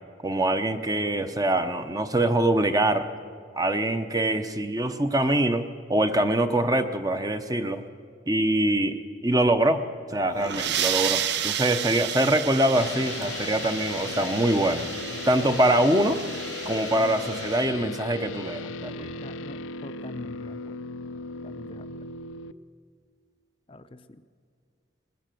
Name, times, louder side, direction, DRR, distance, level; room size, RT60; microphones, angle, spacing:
voice 1, 0.2-3.1 3.5-7.8 8.3-9.0 9.2-9.8 10.1-14.9 15.3-16.2 16.6-19.1, right 1 dB, 20° right, 8 dB, 0.8 m, -24 dB
sound 1, 10.2-17.7, right 9 dB, 60° right, 0.7 m, -32 dB
sound 2, 12.7-22.5, left 4 dB, 85° left, 0.6 m, -36 dB
voice 2, 19.2-20.8 21.4-22.1 23.7-24.0, left 2 dB, 30° left, 8 dB, 0.6 m, -44 dB
21.5 x 20.0 x 7.7 m, 2.1 s
head